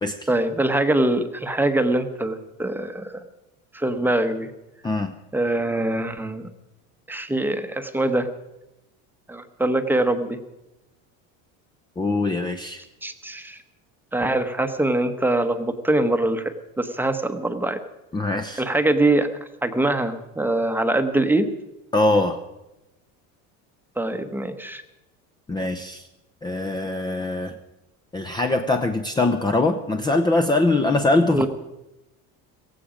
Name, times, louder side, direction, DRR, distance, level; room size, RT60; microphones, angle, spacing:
voice 1, 0.3-3.2 3.7-4.5 5.3-6.4 7.1-8.3 9.3-10.4 13.0-13.6 14.1-17.8 18.6-19.3 19.6-21.5 24.0-24.8 31.3-31.5, right 1 dB, 5° right, 8 dB, 1.0 m, -23 dB
voice 2, 4.8-5.1 12.0-12.8 18.1-18.6 21.9-22.4 25.5-26.1 26.4-27.5 28.1-31.5, left 2 dB, 10° left, 7 dB, 0.7 m, -22 dB
16.5 x 16.0 x 5.1 m, 0.96 s
cardioid pair, 135°, 38 cm